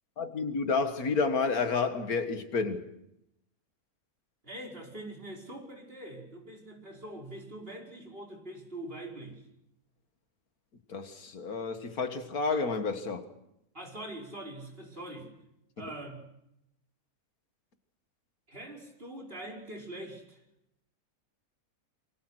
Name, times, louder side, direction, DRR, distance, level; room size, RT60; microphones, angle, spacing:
voice 1, 0.2-2.9 10.9-13.3 15.8-15.9, left 4 dB, 85° left, 9 dB, 2.3 m, -30 dB
voice 2, 4.4-9.4 13.7-15.3 15.8-16.2 18.5-20.4, right 1 dB, 40° right, 0 dB, 5.3 m, -43 dB
27.5 x 24.5 x 6.4 m, 0.82 s
omnidirectional pair, 1.5 m